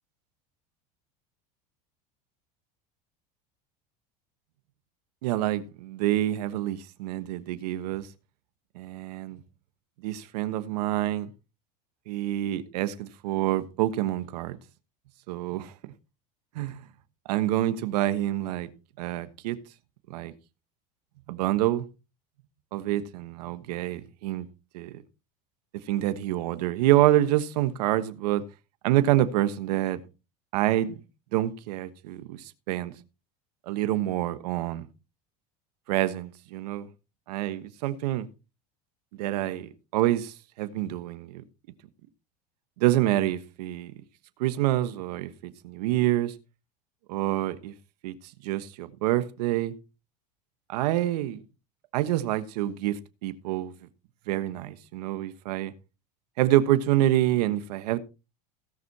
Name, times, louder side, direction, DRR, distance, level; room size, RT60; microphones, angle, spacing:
voice 1, 5.2-8.1 8.7-9.4 10.0-11.3 12.1-14.6 15.3-15.9 16.5-16.8 17.3-18.7 19.0-19.6 20.1-20.3 21.3-21.8 22.7-24.4 24.7-25.0 25.9-28.4 28.8-30.0 30.5-30.9 31.3-32.9 33.7-34.9 35.9-36.9 37.3-38.3 39.2-41.4 42.8-43.9 44.4-46.3 47.1-47.7 48.0-48.1 48.4-49.7 50.7-51.4 51.9-53.7 54.3-55.7 56.4-58.0, right 14 dB, 85° right, 1.3 m, -27 dB
17.0 x 6.3 x 4.2 m
supercardioid pair, 125°, 20 cm